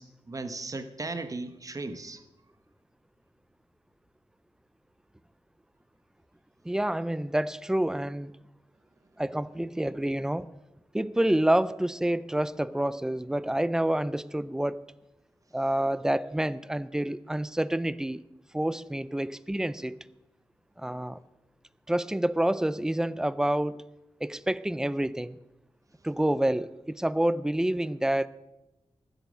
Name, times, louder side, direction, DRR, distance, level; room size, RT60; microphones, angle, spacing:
voice 1, 0.0-2.2, right 3 dB, 30° right, 0.9 m, -37 dB
voice 2, 6.6-8.3 9.2-10.5 10.9-14.8 15.5-18.2 18.5-20.0 20.8-21.2 21.9-23.8 24.2-25.3 26.0-28.3, right 1 dB, 5° right, 0.4 m, -28 dB
14.5 x 8.2 x 6.3 m
wide cardioid pair, 140°, 11 cm